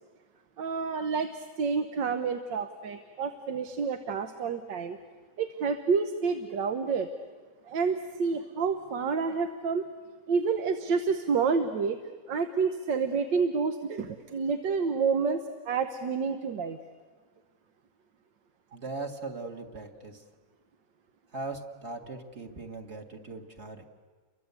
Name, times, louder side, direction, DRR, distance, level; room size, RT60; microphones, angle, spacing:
voice 1, 0.6-5.0 5.4-7.1 7.6-9.9 10.3-12.0 12.3-16.8, right 5 dB, 85° right, 8 dB, 1.7 m, -29 dB
voice 2, 18.7-20.2 21.3-23.8, right 3 dB, 40° right, 4 dB, 2.1 m, -39 dB
30.0 x 23.5 x 8.2 m, 1.5 s
omnidirectional pair, 1.9 m